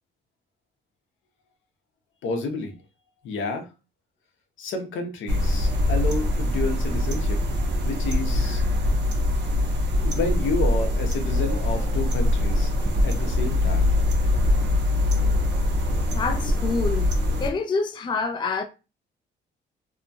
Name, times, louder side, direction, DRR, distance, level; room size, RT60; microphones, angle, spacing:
voice 1, 2.2-2.7 3.2-3.7 4.6-7.4 7.8-8.6 10.0-12.7 13.0-13.9, left 3 dB, 75° left, 0.7 m, -30 dB
sound 1, 5.3-17.5, left 1 dB, 60° right, 0.7 m, -23 dB
voice 2, 16.1-17.1 17.4-18.6, left 4 dB, 25° left, 0.4 m, -27 dB
2.7 x 2.2 x 2.6 m
cardioid pair, 90°, 20 cm